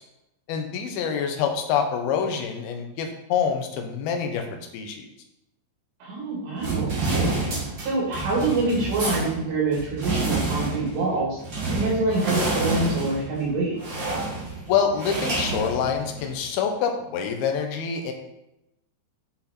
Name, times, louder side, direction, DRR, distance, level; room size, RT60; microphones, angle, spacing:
voice 1, 0.5-5.1 14.7-18.1, left 7 dB, 70° left, 4 dB, 2.6 m, -26 dB
voice 2, 6.0-7.5 7.8-11.4 11.7-14.0, right 2 dB, 75° right, -6 dB, 4.5 m, -26 dB
sound 1, 6.6-16.4, right 3 dB, 40° right, 1.8 m, -29 dB
8.8 x 6.2 x 4.3 m, 0.88 s
omnidirectional pair, 5.1 m